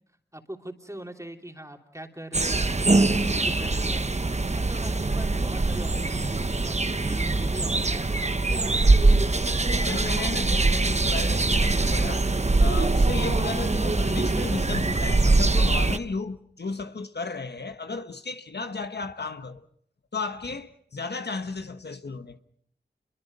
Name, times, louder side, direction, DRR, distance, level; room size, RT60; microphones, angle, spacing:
voice 1, 0.3-4.0 4.5-8.9, right 1 dB, 15° right, 3.3 m, -41 dB
sound 1, 2.3-16.0, right 2 dB, 40° right, 1.0 m, -23 dB
voice 2, 9.7-12.3 12.6-19.6 20.1-22.4, left 3 dB, 70° left, 1.3 m, -34 dB
28.5 x 23.0 x 5.4 m
wide cardioid pair, 60°, 18 cm